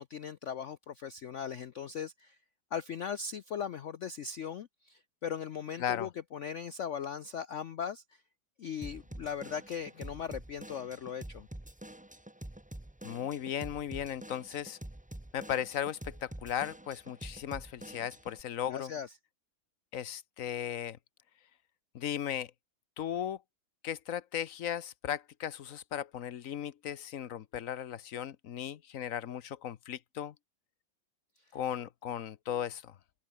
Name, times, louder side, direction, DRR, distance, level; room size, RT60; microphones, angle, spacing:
voice 1, 0.0-2.4 2.7-8.2 8.6-11.5 18.7-19.1, left 7 dB, 85° left, 0.6 m, -39 dB
Drum kit / Drum, 8.8-18.4, right 1 dB, 15° right, 0.3 m, -47 dB
voice 2, 13.0-14.8 15.3-18.9 19.9-21.0 21.9-22.5 23.0-23.4 23.8-30.3 31.5-32.9, left 10 dB, 55° left, 1.0 m, -36 dB
open air
omnidirectional pair, 2.1 m